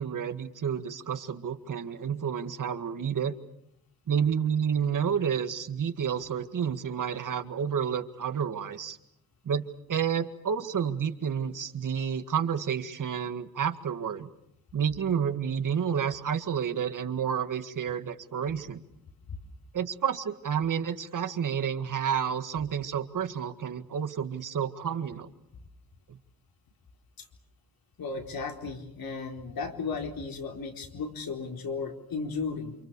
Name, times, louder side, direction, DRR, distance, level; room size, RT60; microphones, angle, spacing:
voice 1, 0.0-3.3 4.1-9.0 9.5-14.3 14.7-18.8 19.7-25.3, right 7 dB, 60° right, 8 dB, 1.9 m, -30 dB
voice 2, 28.0-32.8, left 4 dB, 75° left, 3 dB, 4.2 m, -35 dB
29.0 x 27.5 x 6.9 m, 0.75 s
wide cardioid pair, 170°, 36 cm